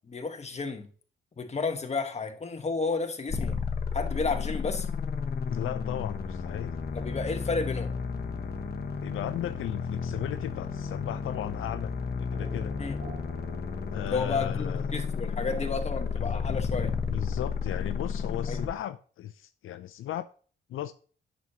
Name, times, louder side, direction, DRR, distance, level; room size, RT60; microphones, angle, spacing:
voice 1, 0.1-0.9 1.4-3.6 3.9-4.9 6.9-7.9 12.8-13.0 14.1-16.9 18.5-18.7, left 4 dB, 30° left, 1.2 m, -32 dB
sound 1, 3.3-18.7, left 5 dB, 50° left, 1.1 m, -32 dB
voice 2, 5.5-6.7 9.0-11.9 12.2-12.7 13.9-15.0 16.2-20.3 20.7-20.9, left 12 dB, 80° left, 0.4 m, -36 dB
sound 2, 12.3-17.8, right 2 dB, 50° right, 3.0 m, -48 dB
9.1 x 6.2 x 2.8 m
cardioid pair, 90°, 21 cm